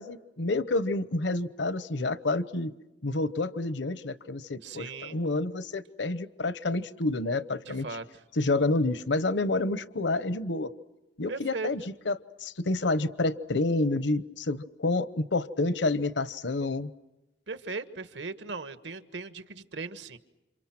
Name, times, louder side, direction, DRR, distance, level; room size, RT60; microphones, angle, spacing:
voice 1, 0.0-2.7 3.0-7.9 8.4-10.7 11.2-16.9, left 2 dB, 80° left, 14 dB, 1.0 m, -29 dB
voice 2, 4.6-5.2 7.6-8.0 11.3-11.7 17.5-20.2, right 4 dB, 80° right, 10 dB, 1.6 m, -38 dB
30.0 x 27.0 x 6.0 m, 1.0 s
head